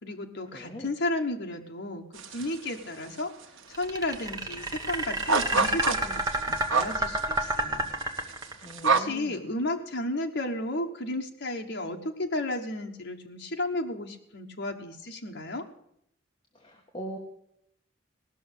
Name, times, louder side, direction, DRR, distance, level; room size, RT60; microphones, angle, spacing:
voice 1, 0.0-3.3 3.7-7.9 8.8-15.7, left 1 dB, 60° left, 3 dB, 1.3 m, -33 dB
voice 2, 0.5-0.9 8.6-9.5 16.5-17.2, equal, 25° left, 1 dB, 1.5 m, -41 dB
sound 1, 2.1-2.8 3.0-3.8 4.1-4.2 4.5-9.0, right 4 dB, 80° right, 1.1 m, -28 dB
sound 2, 3.7-8.8, right 1 dB, 20° right, 1.2 m, -29 dB
18.0 x 6.4 x 8.1 m, 0.73 s
head